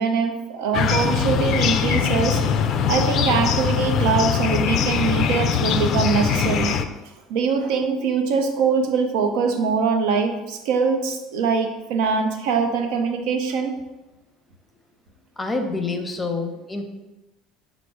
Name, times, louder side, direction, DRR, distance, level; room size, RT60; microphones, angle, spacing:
voice 1, 0.0-2.4 2.9-6.8 7.3-13.8, right 5 dB, 80° right, 5 dB, 0.6 m, -23 dB
sound 1, 0.7-6.8, left 7 dB, 55° left, 0.3 m, -22 dB
voice 2, 15.4-16.8, left 3 dB, 15° left, 4 dB, 0.6 m, -27 dB
5.0 x 2.0 x 4.6 m, 1.1 s
supercardioid pair, 105°, 0 cm